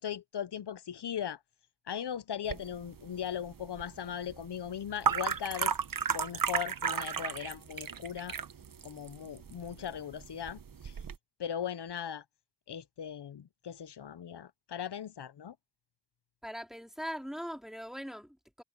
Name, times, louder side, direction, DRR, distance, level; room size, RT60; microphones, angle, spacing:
voice 1, 0.0-1.4 1.9-5.7 6.1-8.4 8.8-11.0 11.4-12.2 12.7-15.5, left 9 dB, 80° left, 0.7 m, -38 dB
sound 1, 2.5-11.2, right 7 dB, 55° right, 0.8 m, -35 dB
voice 2, 16.4-18.6, equal, ahead, 3.1 m, -41 dB
wide cardioid pair, 55°, 40 cm